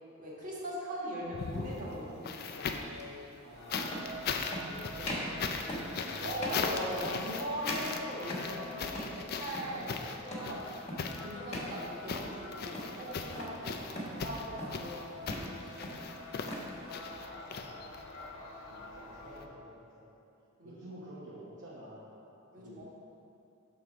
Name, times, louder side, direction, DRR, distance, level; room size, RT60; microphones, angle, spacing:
voice 1, 0.2-2.3 2.5-3.4 6.2-9.9 10.2-10.6 11.0-13.9 14.2-15.6 20.6-20.7 22.5-22.9, equal, 40° right, -6 dB, 1.6 m, -40 dB
sound 1, 1.2-3.0 3.7-18.2 19.3-19.4, left 5 dB, 50° left, 0.4 m, -39 dB
sound 2, 1.5-1.7 3.0-3.1 3.7-4.1 4.5-4.7 5.0-5.4 5.7-6.0 6.4-6.7 7.0-7.4 7.7-8.6 8.9-9.2 9.5-9.8 10.3-10.6 10.9-11.2 11.5-11.8 12.1-12.4 12.7-13.6 14.0-14.2 14.6-14.9 15.2-15.5 15.8-16.7, left 1 dB, 30° left, 1.3 m, -40 dB
voice 2, 3.4-6.4 9.8-10.1 13.8-14.0 17.0-17.7 18.7-19.6 19.9-20.1 20.6-22.2 22.5-22.9, right 1 dB, 55° right, -7 dB, 1.0 m, -50 dB
sound 3, 3.5-19.4, left 1 dB, 65° left, 1.0 m, -48 dB
6.4 x 3.9 x 5.9 m, 2.7 s
head